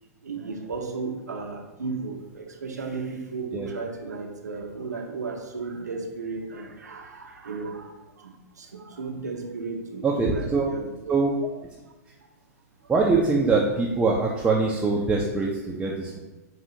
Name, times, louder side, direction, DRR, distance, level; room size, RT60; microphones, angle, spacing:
voice 1, 0.2-7.9 8.2-10.9, right 4 dB, 80° right, 2 dB, 0.6 m, -34 dB
voice 2, 10.0-10.7 11.1-11.3 12.9-16.2, right 4 dB, 10° right, -3 dB, 0.4 m, -23 dB
4.8 x 2.4 x 2.7 m, 1.1 s
figure-of-eight pair, 105°, 9 cm